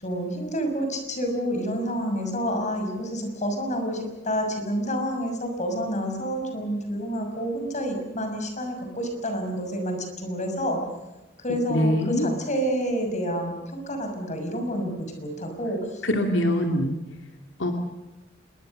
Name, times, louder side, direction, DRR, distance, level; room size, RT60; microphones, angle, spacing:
voice 1, 0.0-10.8 11.4-16.0, equal, 40° left, 5 dB, 6.2 m, -29 dB
voice 2, 11.7-12.3 16.0-17.0 17.6-17.7, left 1 dB, 80° left, 4 dB, 2.5 m, -23 dB
27.0 x 22.5 x 6.6 m, 1.0 s
head